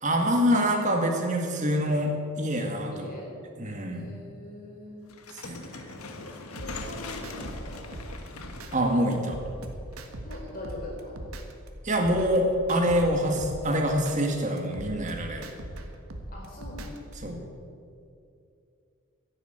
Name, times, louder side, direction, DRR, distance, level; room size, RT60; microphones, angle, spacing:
voice 1, 0.0-3.1 3.6-4.1 5.3-5.6 8.7-9.4 11.8-15.5 17.2-17.4, equal, 35° right, 2 dB, 2.0 m, -25 dB
voice 2, 2.9-3.3 3.9-5.1 6.6-7.9 10.2-11.2 16.3-17.1, left 1 dB, 40° left, -2 dB, 4.6 m, -42 dB
sound 1, 5.1-10.2, left 3 dB, 80° left, 1.5 m, -41 dB
sound 2, 6.6-8.7 9.1-11.7 12.0-14.2 14.6-17.1, right 1 dB, 75° right, 1.6 m, -41 dB
12.0 x 11.0 x 9.0 m, 2.5 s
head